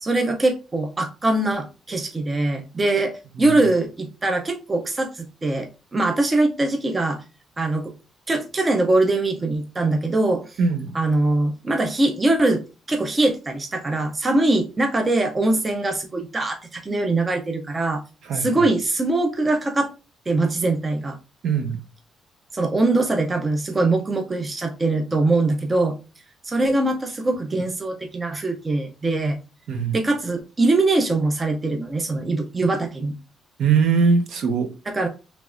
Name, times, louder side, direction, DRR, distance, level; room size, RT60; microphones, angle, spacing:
voice 1, 0.0-7.2 7.6-7.9 8.3-10.6 10.9-12.6 12.9-18.0 18.3-19.9 20.3-21.2 22.5-26.0 26.4-29.4 29.9-33.2 34.9-35.1, right 2 dB, 20° right, 0.5 m, -22 dB
voice 2, 10.6-10.9 18.3-18.6 21.4-21.8 29.7-30.0 33.6-34.7, right 5 dB, 65° right, 0.7 m, -21 dB
3.4 x 3.0 x 2.4 m
cardioid pair, 150°, 0 cm